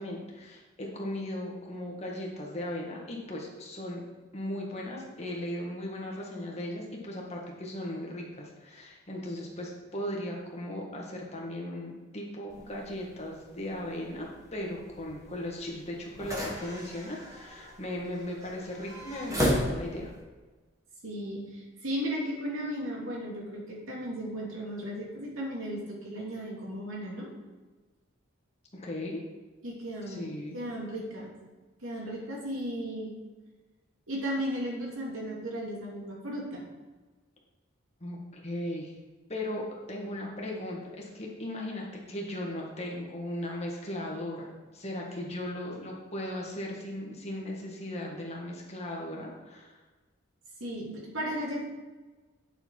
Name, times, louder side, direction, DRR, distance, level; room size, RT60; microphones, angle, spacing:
voice 1, 0.0-4.0 4.3-20.1 28.7-29.2 30.1-30.7 38.0-38.9 39.3-49.8, left 1 dB, 30° left, -2 dB, 1.8 m, -37 dB
sound 1, 12.5-20.2, equal, 15° right, 1.7 m, -36 dB
voice 2, 21.0-27.3 29.6-31.4 31.8-33.1 34.1-36.6 50.6-51.6, equal, 80° right, -2 dB, 2.6 m, -35 dB
9.8 x 6.7 x 4.7 m, 1.3 s
head